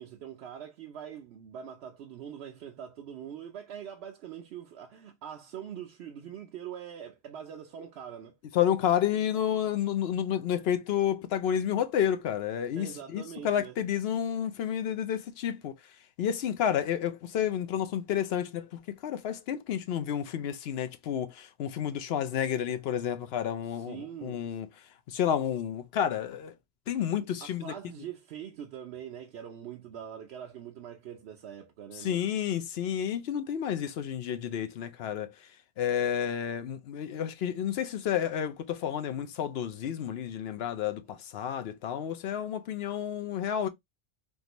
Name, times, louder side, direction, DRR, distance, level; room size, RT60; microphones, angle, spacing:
voice 1, 0.0-8.4 12.8-13.8 23.6-24.6 27.4-32.3, right 9 dB, 75° right, 0.8 m, -43 dB
voice 2, 8.5-15.7 16.2-24.7 25.1-26.5 26.9-27.7 32.0-35.3 35.8-43.7, left 9 dB, 70° left, 0.9 m, -30 dB
3.6 x 2.5 x 2.9 m
omnidirectional pair, 1.1 m